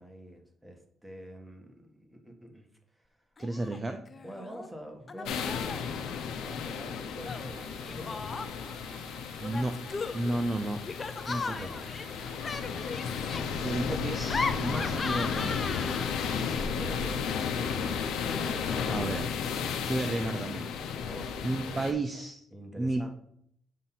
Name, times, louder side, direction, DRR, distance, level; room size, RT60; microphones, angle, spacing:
voice 1, 0.0-3.2 4.2-8.3 11.3-11.9 12.2-13.7 16.7-18.0 21.0-21.9 22.5-23.1, equal, 5° right, 3 dB, 1.3 m, -47 dB
Laughter, 3.4-3.8 4.1-4.7 5.1-5.9 7.2-8.7 9.4-16.4, left 4 dB, 35° left, 0.4 m, -37 dB
voice 2, 3.4-4.0 9.4-9.8 10.1-10.8 11.3-11.7 13.6-15.7 18.8-19.3 19.8-20.7 21.4-22.4 22.8-23.1, right 2 dB, 25° right, 6 dB, 0.5 m, -32 dB
sound 1, 5.3-21.9, left 6 dB, 90° left, 0.7 m, -34 dB
sound 2, 7.2-16.8, left 1 dB, 80° right, 0.8 m, -49 dB
7.5 x 2.7 x 5.8 m, 0.69 s
cardioid pair, 90°, 0 cm